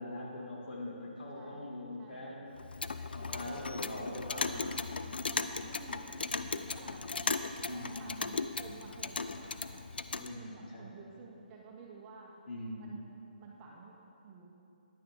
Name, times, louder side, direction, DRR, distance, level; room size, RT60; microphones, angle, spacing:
voice 1, 0.0-2.6 3.1-5.2 7.6-8.2 10.2-10.9 12.5-12.9, left 1 dB, 65° left, -3 dB, 2.4 m, -42 dB
voice 2, 1.3-2.4 3.2-3.9 4.5-7.4 7.7-9.8 10.2-12.3 12.8-14.5, right 4 dB, 20° right, -3 dB, 1.1 m, -53 dB
Clock, 2.6-10.3, left 4 dB, 80° left, 0.5 m, -37 dB
10.5 x 9.4 x 3.8 m, 2.8 s
hypercardioid pair, 155°, 5 cm